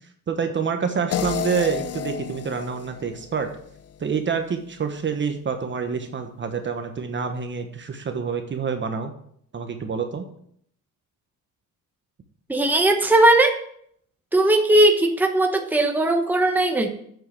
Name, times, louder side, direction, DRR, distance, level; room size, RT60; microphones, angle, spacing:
voice 1, 0.3-3.5 4.0-9.1 9.5-10.2, right 6 dB, 35° right, 6 dB, 1.2 m, -27 dB
sound 1, 1.1-4.2, left 8 dB, 45° left, 0.7 m, -31 dB
voice 2, 12.5-13.5 14.3-16.9, right 1 dB, 5° right, 3 dB, 1.2 m, -18 dB
7.7 x 7.6 x 7.6 m, 0.67 s
cardioid pair, 135°, 34 cm